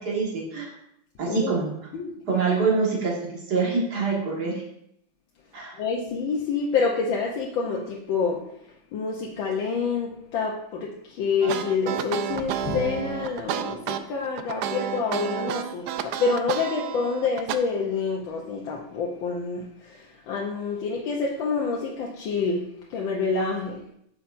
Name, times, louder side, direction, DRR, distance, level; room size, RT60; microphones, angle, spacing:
voice 1, 0.0-0.7 1.2-1.7 2.3-3.1 3.5-4.6 5.5-5.8, right 4 dB, 50° right, -2 dB, 2.2 m, -25 dB
voice 2, 5.8-8.4 8.9-22.6 22.9-23.8, left 5 dB, 70° left, -2 dB, 1.5 m, -27 dB
sound 1, 11.4-17.6, right 9 dB, 90° right, 0.8 m, -30 dB
8.8 x 6.7 x 2.6 m, 0.76 s
omnidirectional pair, 2.3 m